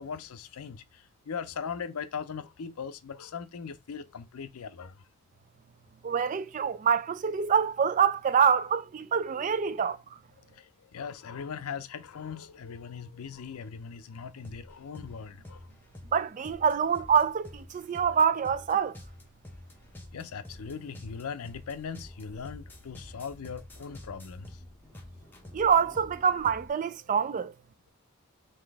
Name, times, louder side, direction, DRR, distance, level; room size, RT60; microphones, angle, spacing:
voice 1, 0.0-5.0 10.4-15.7 18.1-18.2 20.1-24.6 27.3-27.4, left 6 dB, 80° left, 0.5 m, -40 dB
voice 2, 6.0-10.0 16.1-18.9 25.5-27.5, right 7 dB, 35° right, 0.3 m, -26 dB
sound 1, 14.4-26.7, left 1 dB, 10° left, 0.7 m, -48 dB
3.9 x 2.8 x 3.4 m
head